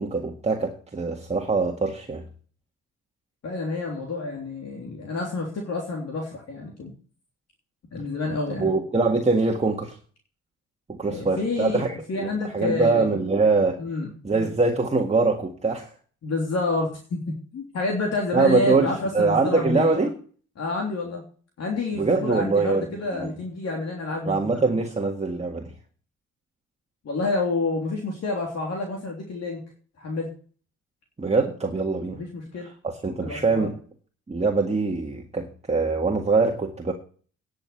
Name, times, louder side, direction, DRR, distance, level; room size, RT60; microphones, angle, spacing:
voice 1, 0.0-2.3 8.6-10.0 10.9-12.3 12.5-13.8 14.2-15.9 18.3-20.1 21.9-22.9 23.1-23.3 24.3-25.7 31.2-32.2 32.8-33.8 34.3-36.9, right 3 dB, 20° right, 1 dB, 1.8 m, -23 dB
voice 2, 3.4-6.9 7.9-8.7 11.1-13.2 13.8-14.1 16.2-17.2 17.5-19.9 20.6-21.2 21.6-24.6 27.0-29.6 30.0-30.3 32.1-32.7 33.2-33.7, left 3 dB, 55° left, 0 dB, 3.5 m, -29 dB
10.5 x 6.6 x 8.4 m, 0.41 s
cardioid pair, 90°, 30 cm